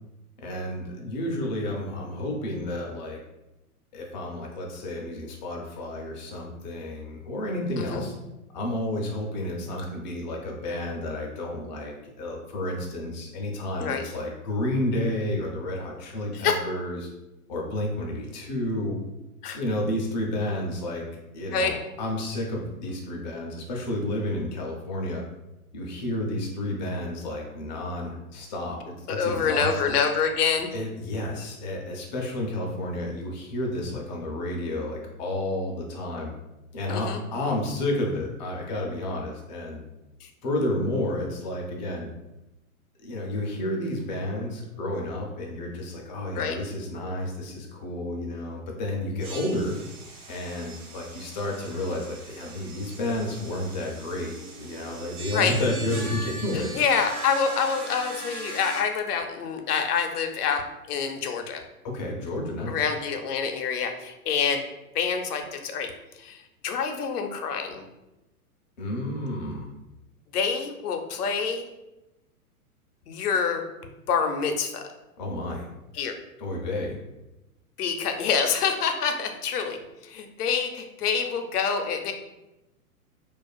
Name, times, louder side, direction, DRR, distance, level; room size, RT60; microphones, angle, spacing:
voice 1, 0.4-3.2 3.9-8.1 8.5-17.1 17.5-19.0 19.5-21.0 21.3-25.2 25.7-30.0 30.7-36.3 36.7-39.8 40.4-42.1 43.0-49.7 50.3-56.7 61.8-62.8 68.8-69.7 75.2-75.7 76.4-77.0, left 1 dB, 35° left, 0 dB, 0.4 m, -31 dB
voice 2, 29.1-30.7 36.9-37.2 40.2-40.3 46.3-46.6 55.3-55.5 56.5-61.6 62.7-64.6 64.9-65.9 66.2-67.8 70.3-71.7 73.1-73.6 74.1-74.8 75.9-76.1 77.8-82.1, left 6 dB, 80° left, 5 dB, 0.6 m, -26 dB
sound 1, 49.2-58.8, right 2 dB, 75° right, 0.8 m, -40 dB
2.4 x 2.3 x 2.3 m, 0.97 s
hypercardioid pair, 125°, 45 cm